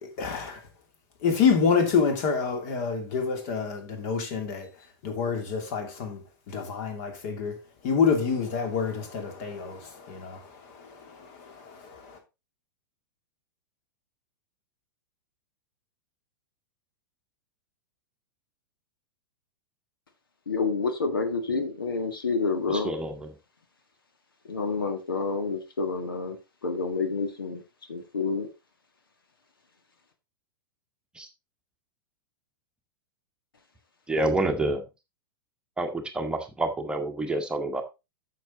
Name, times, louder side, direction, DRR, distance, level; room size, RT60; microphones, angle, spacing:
voice 1, 0.0-0.6 1.2-4.7 5.0-6.2 6.5-7.6 7.8-12.2, left 6 dB, 45° left, 2.7 m, -27 dB
voice 2, 20.5-22.9 24.5-26.4 26.6-27.6 27.9-28.5, left 4 dB, 70° left, 1.7 m, -28 dB
voice 3, 22.7-23.3 31.1-31.3 34.1-34.8 35.8-37.8, right 2 dB, 5° right, 1.2 m, -28 dB
9.2 x 6.7 x 3.8 m
figure-of-eight pair, 95°, 12 cm